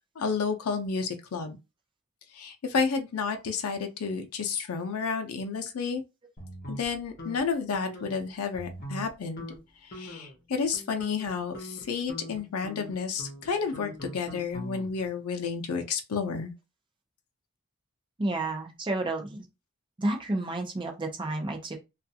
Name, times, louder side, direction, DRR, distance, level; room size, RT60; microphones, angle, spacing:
voice 1, 0.2-1.6 2.3-6.0 6.7-9.4 9.8-16.5, left 5 dB, 90° left, 0.5 m, -31 dB
sound 1, 6.4-7.4 7.7-8.1 8.5-9.1 9.4-9.6 9.9-10.3 10.7-15.1, equal, 45° left, 0.9 m, -42 dB
voice 2, 18.2-19.5 20.0-21.8, right 2 dB, 20° right, 0.5 m, -31 dB
2.4 x 2.3 x 2.7 m
head